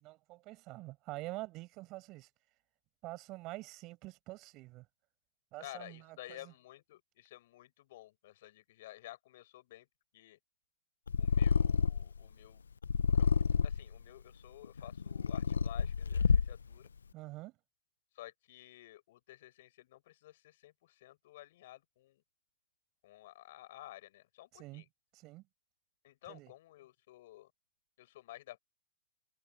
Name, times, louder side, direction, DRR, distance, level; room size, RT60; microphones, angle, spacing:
voice 1, 0.0-2.3 3.0-4.9 5.5-6.5 17.1-17.5 24.5-24.9 25.1-25.5 26.3-26.5, right 20 dB, 35° right, 7.2 m, -46 dB
voice 2, 5.6-9.9 10.1-10.4 11.2-12.6 13.1-16.9 18.2-22.2 23.0-24.8 26.0-27.5 28.0-28.6, left 15 dB, 55° left, 7.0 m, -53 dB
Purr, 11.1-12.2 12.8-13.9 14.6-16.7, left 5 dB, 90° left, 0.7 m, -29 dB
hypercardioid pair, 130°, 0 cm